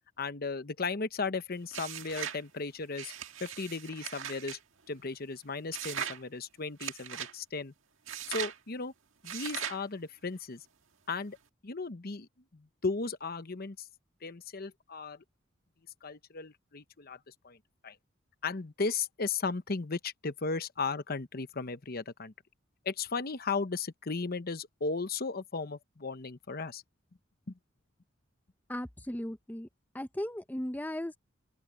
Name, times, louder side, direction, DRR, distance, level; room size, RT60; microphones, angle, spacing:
voice 1, 0.2-3.1 3.4-4.6 4.9-7.7 8.3-8.9 9.2-10.6 11.1-11.4 11.6-13.9 14.2-15.2 16.0-17.6 17.8-18.0 18.4-22.3 22.8-26.8 27.5-27.6, left 4 dB, 50° left, 1.0 m, -36 dB
sound 1, 1.7-2.4 2.9-4.6 5.7-6.2 6.8-7.3 8.1-8.6 9.2-9.8, right 8 dB, 90° right, 1.8 m, -39 dB
voice 2, 28.7-29.7 29.9-31.2, left 1 dB, 10° left, 0.6 m, -36 dB
open air
head